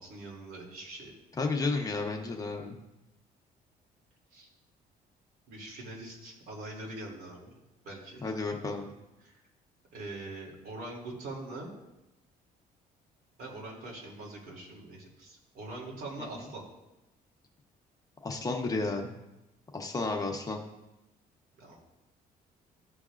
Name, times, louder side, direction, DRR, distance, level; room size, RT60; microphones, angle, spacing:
voice 1, 0.0-1.1 4.3-4.5 5.5-7.6 7.8-8.3 9.2-9.4 9.9-11.7 13.4-16.6 21.6-21.8, right 2 dB, 70° right, -2 dB, 2.8 m, -43 dB
voice 2, 1.4-2.8 8.2-8.8 18.2-19.1 19.7-20.6, left 3 dB, 20° left, 2 dB, 1.0 m, -32 dB
14.5 x 5.2 x 2.5 m, 0.95 s
cardioid pair, 120°, 16 cm